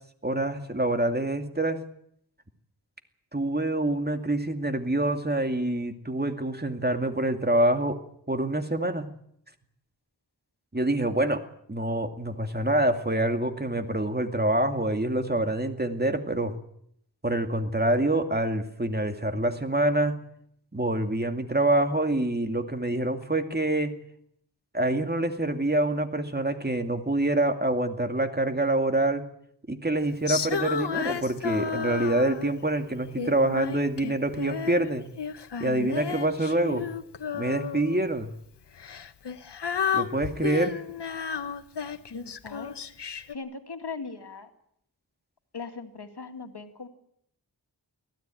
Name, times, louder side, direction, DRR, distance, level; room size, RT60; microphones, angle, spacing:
voice 1, 0.2-1.8 3.3-8.0 8.3-9.1 10.7-11.4 11.7-16.5 17.2-20.2 20.7-23.9 24.7-29.2 29.7-35.1 35.6-36.9 37.3-38.3 39.9-40.8, right 1 dB, 25° right, 6 dB, 2.4 m, -26 dB
Female singing, 30.3-32.6 33.2-34.9 35.2-38.0 38.8-43.3, left 7 dB, 90° left, 1.1 m, -32 dB
voice 2, 42.1-42.7 43.3-44.5 45.5-46.9, left 4 dB, 75° left, 6 dB, 2.3 m, -39 dB
24.0 x 16.0 x 9.1 m, 0.72 s
wide cardioid pair, 60°, 40 cm